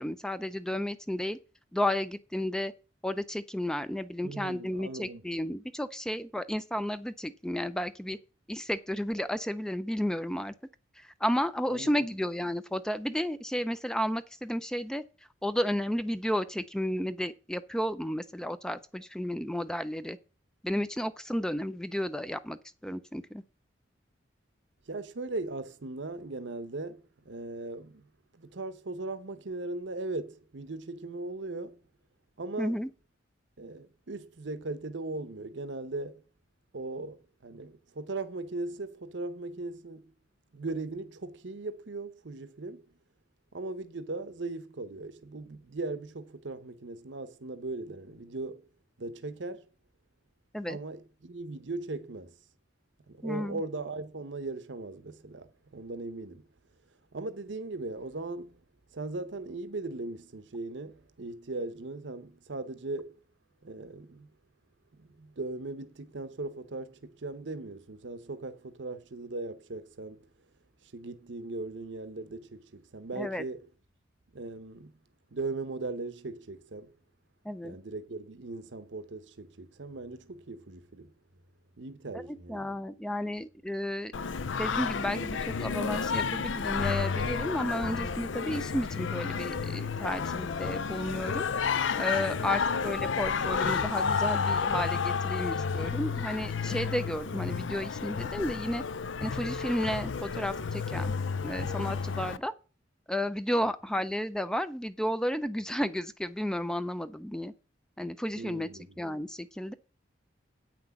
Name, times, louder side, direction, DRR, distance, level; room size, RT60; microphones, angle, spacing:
voice 1, 0.0-1.4 1.7-2.7 3.0-8.2 8.5-10.5 11.0-15.0 15.4-20.2 20.6-23.4 32.6-32.9 50.5-50.8 53.2-53.6 73.2-73.4 77.4-77.8 82.1-82.2 82.5-84.1 84.5-91.5 92.0-98.8 99.2-101.1 101.4-102.5 103.1-107.5 108.0-108.7 109.0-109.7, equal, 5° left, 0.4 m, -32 dB
voice 2, 4.2-5.3 11.7-11.9 24.9-28.1 28.3-31.8 32.4-32.8 33.6-36.2 36.7-40.0 40.5-42.9 43.5-48.7 49.0-49.7 50.7-52.4 53.1-56.5 57.1-58.6 58.9-63.2 63.6-64.3 65.0-70.3 70.8-73.6 74.3-74.9 75.3-76.9 77.6-81.1 81.8-82.7 92.4-92.5 108.4-108.9, right 2 dB, 70° right, 0.8 m, -38 dB
Singing, 84.1-102.4, left 5 dB, 75° left, 0.6 m, -31 dB
8.7 x 6.0 x 6.9 m
head